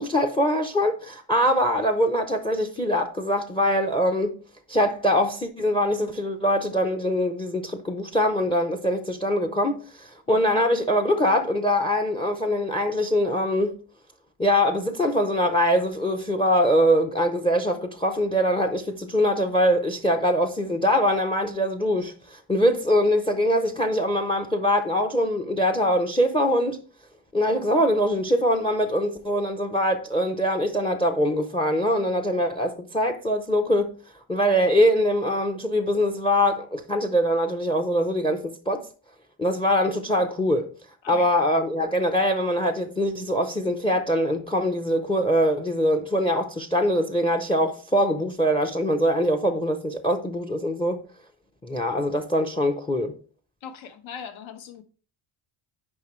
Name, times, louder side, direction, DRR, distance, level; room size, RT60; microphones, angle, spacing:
voice 1, 0.0-4.3 4.7-13.8 14.4-26.8 27.3-33.9 34.3-38.9 39.4-40.7 41.1-51.0 51.6-53.1, equal, 10° left, 0.6 m, -23 dB
voice 2, 53.6-54.8, left 7 dB, 70° left, 1.2 m, -40 dB
9.5 x 5.3 x 3.1 m
cardioid pair, 150°, 48 cm